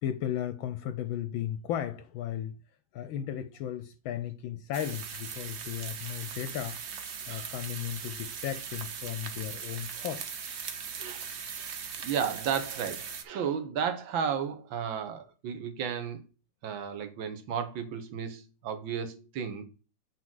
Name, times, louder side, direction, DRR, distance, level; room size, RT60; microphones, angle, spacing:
voice 1, 0.0-2.6 2.9-6.8 7.3-10.4, left 10 dB, 75° left, 1.3 m, -35 dB
sound 1, 4.7-13.2, right 6 dB, 85° right, 0.6 m, -39 dB
voice 2, 12.0-16.2 16.6-19.6, right 7 dB, 65° right, 1.8 m, -33 dB
7.7 x 4.8 x 3.7 m
omnidirectional pair, 2.3 m